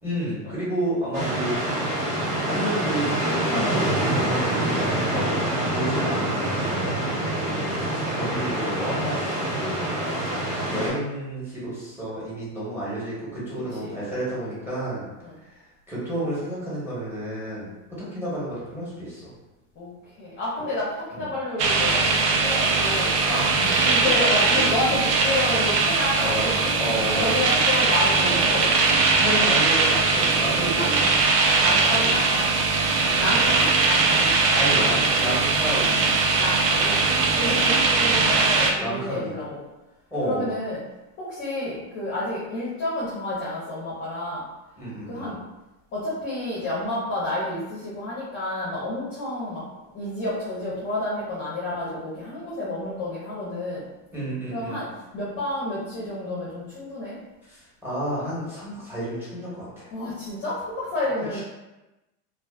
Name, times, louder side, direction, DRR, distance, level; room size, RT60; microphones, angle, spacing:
voice 1, 0.0-1.6 2.5-7.1 8.0-9.2 9.5-9.9 10.7-15.1 15.9-19.3 21.1-21.2 23.2-24.1 26.2-26.5 26.8-27.4 29.2-31.0 31.7-32.1 33.0-33.2 34.5-36.0 37.4-37.6 38.8-39.3 40.1-40.5 44.8-45.3 54.1-54.8 57.5-59.9 61.3-61.4, right 1 dB, 5° right, -8 dB, 1.0 m, -30 dB
sound 1, 1.1-10.9, right 1 dB, 40° right, 1.1 m, -26 dB
voice 2, 7.0-7.3 13.7-14.0 15.2-15.4 19.7-23.2 23.8-26.7 27.2-28.8 30.0-30.3 30.7-31.3 31.6-32.6 33.2-35.1 36.4-39.6 40.2-40.8 41.2-44.4 45.1-45.4 45.9-49.6 49.9-53.8 54.5-54.9 55.1-57.2 59.9-61.4, left 1 dB, 25° left, -8 dB, 0.6 m, -30 dB
sound 2, 21.6-38.7, right 4 dB, 70° right, 0.6 m, -21 dB
2.4 x 2.2 x 2.3 m, 1.0 s
supercardioid pair, 125°, 46 cm